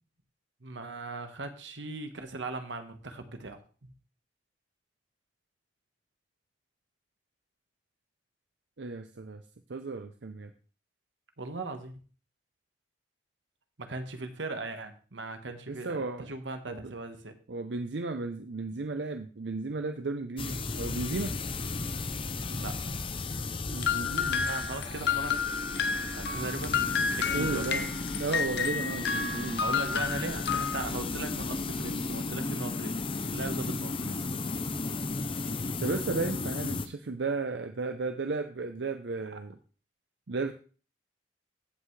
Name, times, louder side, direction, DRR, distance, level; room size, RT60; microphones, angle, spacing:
voice 1, 0.6-3.6 11.4-11.9 13.8-17.3 22.5-22.8 24.2-25.3 26.1-27.7 29.6-33.0 33.3-34.2, right 2 dB, 85° right, 7 dB, 1.3 m, -38 dB
voice 2, 8.8-9.4 9.7-10.5 15.7-16.3 16.7-16.9 17.5-21.3 23.7-24.5 27.3-27.9 28.2-29.6 35.8-39.6 40.3-40.5, right 3 dB, 70° right, 7 dB, 0.6 m, -34 dB
sound 1, 20.4-36.9, left 3 dB, 30° left, 0.6 m, -34 dB
sound 2, 23.8-30.8, left 6 dB, 65° left, 0.8 m, -31 dB
15.5 x 5.7 x 3.2 m, 0.38 s
head